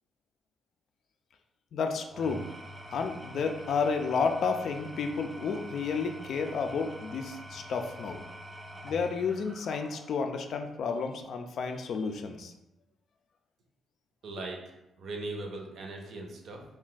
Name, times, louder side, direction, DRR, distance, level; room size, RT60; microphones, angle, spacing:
voice 1, 1.7-2.4 2.9-8.2 8.8-12.5, left 5 dB, 65° left, 5 dB, 0.3 m, -31 dB
Engine / Tools, 2.0-10.3, equal, 10° right, 0.4 m, -46 dB
voice 2, 14.2-14.6 15.0-16.6, right 2 dB, 60° right, 2 dB, 0.6 m, -39 dB
2.5 x 2.2 x 3.9 m, 0.90 s
cardioid pair, 115°, 0 cm